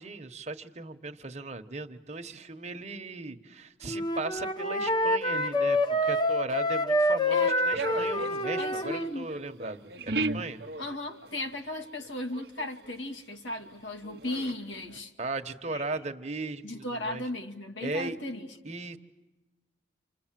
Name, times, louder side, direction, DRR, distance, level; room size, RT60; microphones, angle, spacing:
voice 1, 0.0-10.6 15.2-17.2 17.8-18.2 18.6-19.0, right 3 dB, 35° right, 1.3 m, -37 dB
Wind instrument woodwind instrument, 3.9-9.1, left 1 dB, 25° left, 1.0 m, -27 dB
sound 1, 7.7-11.7 12.0-13.7 14.0-15.0, right 2 dB, 55° right, 0.9 m, -36 dB
voice 2, 8.6-9.3 10.8-15.1 15.7-15.8 16.6-18.5, left 2 dB, 85° left, 2.2 m, -36 dB
29.5 x 26.0 x 7.6 m
head